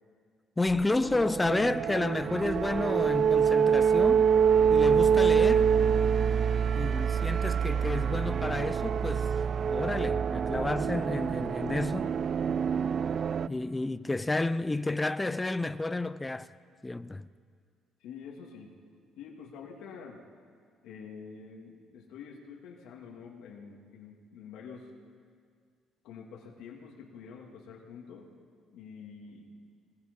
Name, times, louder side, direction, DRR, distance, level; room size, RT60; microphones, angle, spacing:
voice 1, 0.6-4.3 4.7-5.7 6.7-9.3 9.7-12.1 13.5-16.5 16.8-17.3, left 2 dB, 15° left, 0.6 m, -31 dB
sound 1, 0.7-13.5, right 7 dB, 45° right, 0.5 m, -26 dB
voice 2, 6.5-6.9 18.0-18.8 19.2-20.2 20.8-24.9 26.0-28.3 28.7-29.5, left 6 dB, 85° left, 2.5 m, -47 dB
24.0 x 20.5 x 5.4 m
cardioid pair, 110°, 0 cm